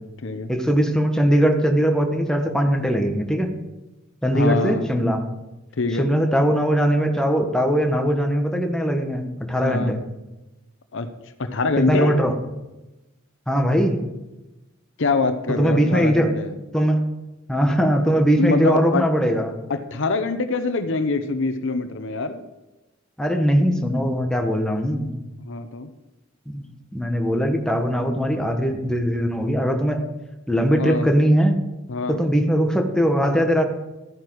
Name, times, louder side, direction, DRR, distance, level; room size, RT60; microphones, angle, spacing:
voice 1, 0.5-3.5 4.2-5.2 6.0-10.0 11.8-12.3 13.5-14.0 15.5-16.4 16.7-17.1 17.5-19.6 23.2-25.1 26.5-26.6 26.9-30.1 30.5-31.6 32.1-33.6, equal, 5° left, 3 dB, 1.3 m, -20 dB
voice 2, 4.3-4.8 5.8-6.1 9.6-10.0 10.9-11.1 11.4-12.2 15.0-16.5 18.4-19.1 19.7-22.4 25.4-25.9 30.7-31.1 31.9-32.2, left 3 dB, 65° left, 10 dB, 0.8 m, -24 dB
13.0 x 9.4 x 4.7 m, 1.0 s
head